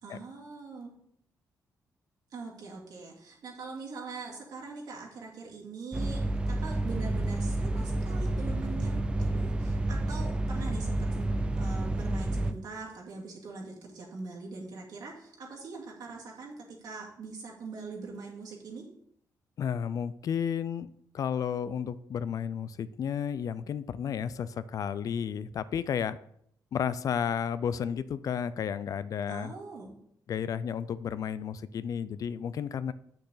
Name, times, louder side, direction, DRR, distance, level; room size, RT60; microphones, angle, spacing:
voice 1, 0.0-0.9 2.3-6.2 6.5-11.3 11.6-18.8 29.3-29.9, right 4 dB, 70° right, -2 dB, 2.3 m, -42 dB
sound 1, 5.9-12.5, right 1 dB, 15° right, 0.5 m, -30 dB
voice 2, 19.6-20.9 21.1-26.2 26.7-29.5 30.3-32.9, left 8 dB, 55° left, 16 dB, 0.4 m, -32 dB
7.9 x 6.5 x 4.0 m, 0.70 s
cardioid pair, 135°, 7 cm